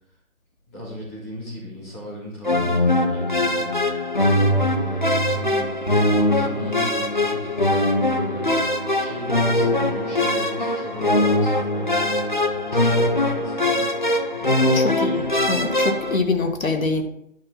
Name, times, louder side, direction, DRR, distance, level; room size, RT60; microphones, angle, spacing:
voice 1, 0.7-3.7 4.7-12.2 12.7-13.8 14.4-14.9, equal, 10° left, -8 dB, 2.3 m, -37 dB
sound 1, 2.4-16.2, left 1 dB, 35° left, 0.5 m, -21 dB
voice 2, 14.7-17.0, left 3 dB, 70° left, 4 dB, 2.0 m, -24 dB
10.5 x 5.9 x 4.1 m, 0.73 s
hypercardioid pair, 175°, 42 cm